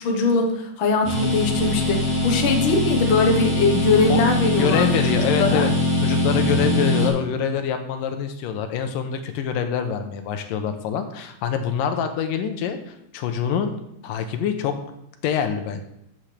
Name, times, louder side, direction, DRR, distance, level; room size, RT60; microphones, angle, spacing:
voice 1, 0.0-5.7, left 3 dB, 55° left, 2 dB, 1.5 m, -21 dB
sound 1, 1.0-7.1, left 1 dB, 5° left, 3.2 m, -22 dB
voice 2, 4.6-5.7 6.0-13.7 14.0-14.8 15.2-15.8, left 7 dB, 85° left, 7 dB, 2.5 m, -25 dB
13.5 x 7.4 x 3.4 m, 0.78 s
omnidirectional pair, 3.8 m